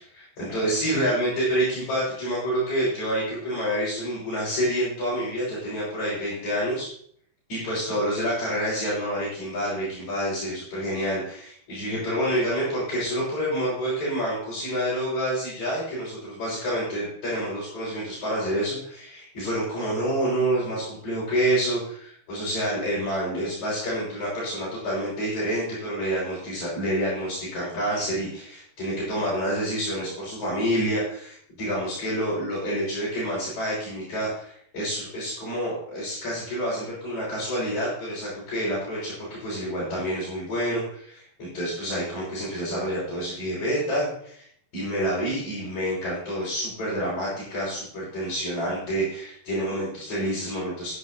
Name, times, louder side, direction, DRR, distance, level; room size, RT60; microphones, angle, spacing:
voice 1, 0.0-6.9 7.5-44.5 44.7-51.0, equal, 45° left, -9 dB, 7.2 m, -28 dB
15.0 x 12.0 x 2.9 m, 0.62 s
omnidirectional pair, 4.8 m